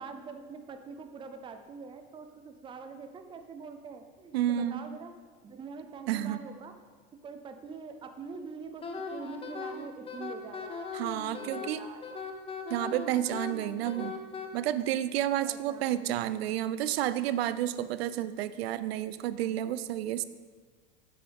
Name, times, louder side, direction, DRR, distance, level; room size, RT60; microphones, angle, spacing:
voice 1, 0.0-5.2 5.4-6.7 7.2-12.1 15.4-16.2, right 4 dB, 15° right, 7 dB, 0.6 m, -44 dB
voice 2, 4.3-4.8 6.1-6.4 10.9-11.8 12.7-14.2 14.5-20.2, right 12 dB, 85° right, 14 dB, 0.5 m, -30 dB
Wind instrument woodwind instrument, 8.8-14.5, left 4 dB, 20° left, 0.7 m, -39 dB
8.5 x 7.8 x 3.5 m, 1.5 s
supercardioid pair, 120°, 30 cm